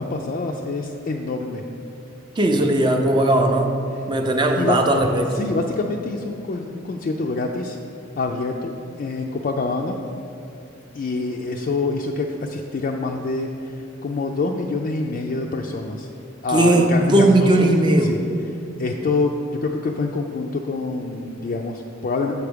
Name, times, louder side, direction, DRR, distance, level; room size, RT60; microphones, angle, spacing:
voice 1, 0.0-1.6 4.6-4.8 5.3-7.8 8.2-10.0 10.9-16.1 16.4-17.8 18.0-18.2 18.8-22.3, left 3 dB, 45° left, 1 dB, 0.3 m, -26 dB
voice 2, 2.4-3.7 4.1-5.5 16.5-18.1, right 1 dB, 25° right, 4 dB, 0.4 m, -18 dB
7.0 x 4.7 x 5.0 m, 2.7 s
head